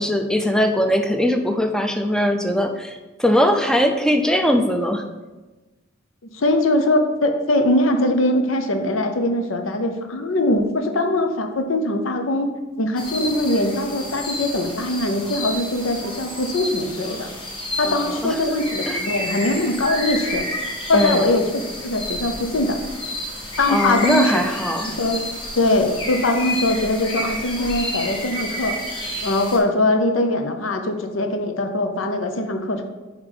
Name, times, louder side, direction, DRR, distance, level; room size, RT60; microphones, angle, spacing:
voice 1, 0.0-5.0 17.8-18.3 18.9-19.0 20.9-21.4 23.7-24.9, equal, 5° left, 5 dB, 0.5 m, -20 dB
voice 2, 6.3-12.5 12.8-17.3 17.8-20.4 20.9-22.8 23.6-24.3 24.8-25.2 25.6-28.7 29.2-32.8, left 1 dB, 80° left, 6 dB, 0.7 m, -21 dB
sound 1, 13.0-29.6, left 1 dB, 25° left, 1.4 m, -30 dB
5.5 x 4.8 x 5.0 m, 1.2 s
head